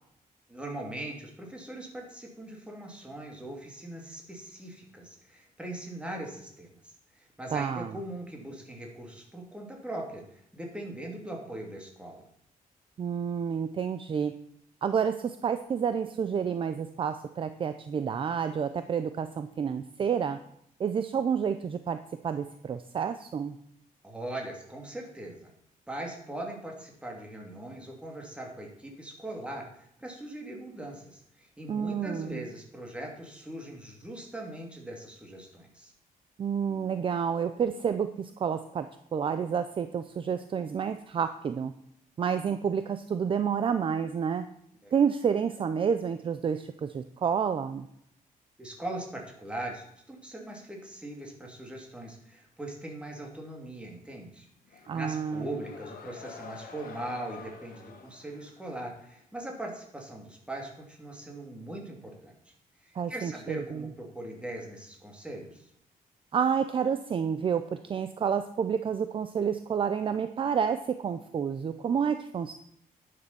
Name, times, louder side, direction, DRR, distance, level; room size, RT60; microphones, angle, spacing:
voice 1, 0.5-6.7 7.4-12.2 24.0-25.5 25.9-29.6 30.0-35.9 44.8-44.9 48.6-62.3 62.8-65.6, right 1 dB, 5° right, 0 dB, 2.6 m, -40 dB
voice 2, 7.5-8.0 13.0-14.3 14.8-20.4 20.8-22.0 22.2-23.5 31.7-32.4 36.4-38.9 39.1-41.7 42.2-44.4 44.9-47.9 54.9-55.5 62.9-63.9 66.3-72.5, right 7 dB, 35° right, 10 dB, 0.5 m, -29 dB
sound 1, 54.7-59.2, left 5 dB, 75° left, 1.7 m, -48 dB
10.5 x 6.7 x 6.9 m, 0.72 s
cardioid pair, 150°, 15 cm